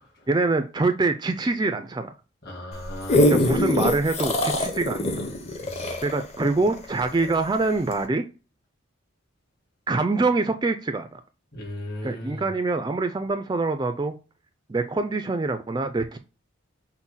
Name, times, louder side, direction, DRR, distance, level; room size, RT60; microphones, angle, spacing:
voice 1, 0.3-2.1 3.3-5.2 6.0-8.2 9.9-11.2 12.0-14.1 14.7-16.2, right 3 dB, 20° right, 0.3 m, -25 dB
voice 2, 2.4-3.6 5.6-5.9 11.5-12.5, left 1 dB, 50° left, 1.7 m, -37 dB
sound 1, 2.7-7.4 7.9-8.0, left 1 dB, 30° left, 0.7 m, -23 dB
6.0 x 2.1 x 3.9 m
head